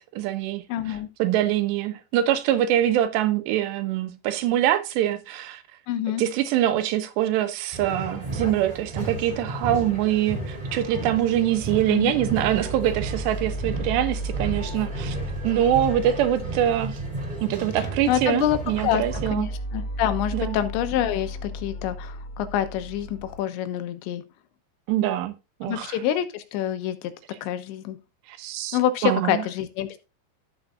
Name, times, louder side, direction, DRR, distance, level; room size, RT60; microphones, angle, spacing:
voice 1, 0.0-0.6 1.2-5.6 6.2-15.2 15.4-17.0 17.4-19.5 20.3-20.6 24.9-25.3 25.6-26.0 28.3-29.4, right 12 dB, 75° right, 3.2 m, -24 dB
voice 2, 0.7-1.1 5.9-6.2 11.9-12.1 17.8-19.0 19.3-24.2 25.6-27.1 27.4-28.0 28.7-30.0, left 11 dB, 80° left, 3.3 m, -27 dB
sound 1, 7.7-19.3, right 2 dB, 15° right, 2.1 m, -33 dB
sound 2, 11.7-23.4, right 1 dB, 50° left, 0.8 m, -35 dB
13.0 x 8.1 x 2.5 m
omnidirectional pair, 5.2 m